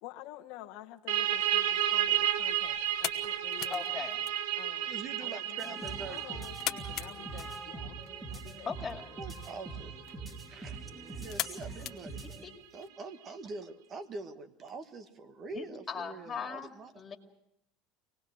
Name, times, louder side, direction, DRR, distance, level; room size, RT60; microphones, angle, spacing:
voice 1, 0.0-4.0 4.5-8.0 8.3-8.7, left 14 dB, 70° left, 5 dB, 1.2 m, -49 dB
sound 1, 1.1-12.4, right 12 dB, 85° right, 1.1 m, -34 dB
sound 2, 1.5-12.9, left 13 dB, 50° left, 1.2 m, -44 dB
voice 2, 3.7-4.2 8.7-9.0 12.2-12.5 15.5-17.2, left 5 dB, 25° left, 3 dB, 2.5 m, -39 dB
voice 3, 4.9-6.4 9.2-9.9 10.5-10.8 11.2-12.2 12.7-16.9, right 3 dB, 35° right, 10 dB, 1.4 m, -44 dB
sound 3, 5.6-12.5, right 3 dB, 15° right, 3.6 m, -44 dB
25.0 x 19.0 x 6.3 m, 0.78 s
supercardioid pair, 125°, 0 cm